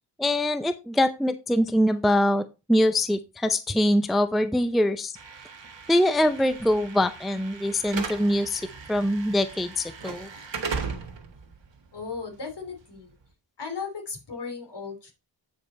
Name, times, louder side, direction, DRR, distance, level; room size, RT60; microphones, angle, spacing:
voice 1, 0.2-5.1 5.9-8.6 8.9-10.3, left 1 dB, ahead, 11 dB, 0.5 m, -23 dB
Slam / Alarm, 5.2-13.2, right 5 dB, 85° right, 1.5 m, -38 dB
voice 2, 11.9-13.1 13.6-15.1, left 5 dB, 70° left, 3 dB, 3.0 m, -36 dB
8.8 x 5.2 x 4.2 m, 0.28 s
wide cardioid pair, 145°, 43 cm